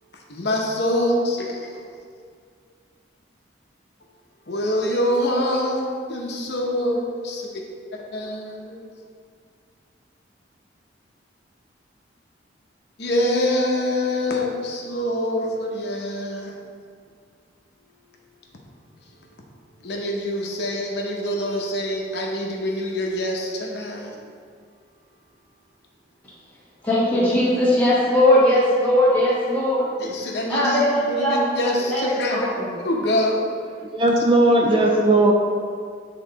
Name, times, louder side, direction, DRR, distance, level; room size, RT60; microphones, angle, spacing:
voice 1, 0.3-1.7 4.5-7.5 7.9-8.9 13.0-16.6 19.8-24.2 30.0-32.5 32.8-33.4 34.2-34.3, left 1 dB, 60° left, -1 dB, 0.8 m, -25 dB
voice 2, 26.8-29.8 30.5-31.4 31.9-32.7, left 1 dB, 10° left, -9 dB, 1.7 m, -19 dB
voice 3, 33.9-35.3, right 2 dB, 25° right, 0 dB, 0.4 m, -17 dB
8.6 x 3.7 x 3.9 m, 2.1 s
head